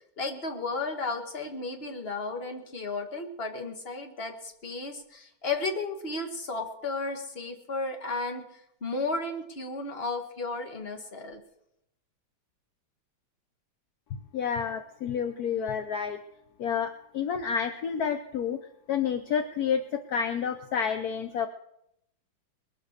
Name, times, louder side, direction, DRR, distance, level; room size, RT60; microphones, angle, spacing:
voice 1, 0.2-11.4, left 3 dB, 30° left, 4 dB, 1.7 m, -34 dB
voice 2, 14.3-16.2 16.6-18.6 18.9-21.5, left 7 dB, 65° left, 8 dB, 1.0 m, -29 dB
21.5 x 7.5 x 6.6 m, 0.78 s
omnidirectional pair, 2.4 m